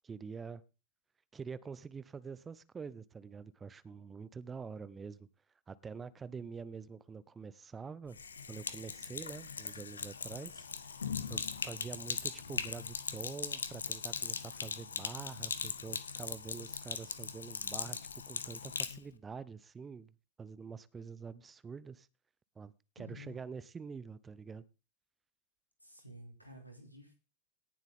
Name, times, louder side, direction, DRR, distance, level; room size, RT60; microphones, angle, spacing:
voice 1, 0.0-0.6 1.3-5.3 5.7-8.2 8.5-11.0 11.3-18.0 18.3-22.1 22.6-24.6, right 5 dB, 15° right, 0.6 m, -46 dB
Sink (filling or washing), 8.1-19.0, left 6 dB, 70° left, 1.0 m, -40 dB
voice 2, 23.0-23.5 25.8-27.1, left 1 dB, 90° left, 3.2 m, -52 dB
18.0 x 7.4 x 3.6 m
figure-of-eight pair, 90°, 0 cm